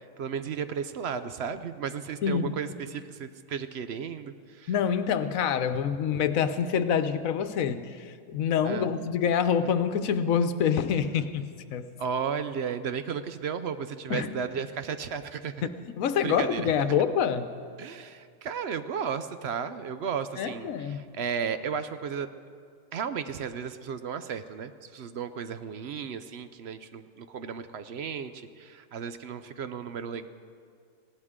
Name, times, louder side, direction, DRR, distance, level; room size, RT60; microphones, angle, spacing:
voice 1, 0.2-4.7 8.6-8.9 12.0-15.5 16.2-16.7 17.8-22.3 22.9-30.3, right 7 dB, 60° right, 11 dB, 0.8 m, -34 dB
voice 2, 4.7-11.5 11.7-11.9 14.1-14.3 16.0-17.5 20.4-21.0, left 7 dB, 85° left, 11 dB, 1.1 m, -26 dB
19.0 x 16.5 x 3.7 m, 2.2 s
omnidirectional pair, 1.4 m